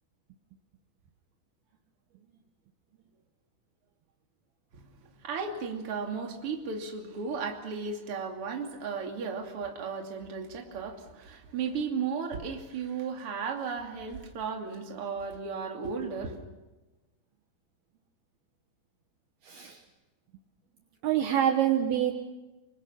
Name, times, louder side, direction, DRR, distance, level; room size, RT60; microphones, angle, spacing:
voice 1, 5.2-16.4, right 5 dB, 35° right, 2 dB, 2.8 m, -35 dB
voice 2, 19.4-19.8 21.0-22.1, right 10 dB, 70° right, 4 dB, 2.7 m, -26 dB
27.0 x 25.0 x 5.8 m, 1.1 s
omnidirectional pair, 5.4 m